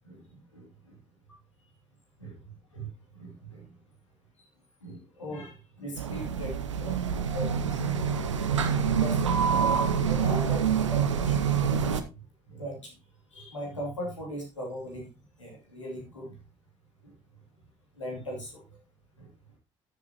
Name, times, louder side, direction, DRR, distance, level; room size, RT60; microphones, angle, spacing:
voice 1, 0.0-0.9 1.3-1.4 2.2-2.4 2.7-2.9 3.1-3.7 4.4-4.5 4.8-7.0 7.3-7.8 8.7-9.3 10.0-11.4 11.7-12.1 12.5-12.9 13.3-15.1 15.4-16.4 17.0-17.1 18.0-18.6 19.2-19.3, equal, 85° left, -1 dB, 2.6 m, -39 dB
sound 1, 6.0-12.0, right 7 dB, 80° right, 0.7 m, -26 dB
12.5 x 7.3 x 2.9 m, 0.27 s
figure-of-eight pair, 50°, 15 cm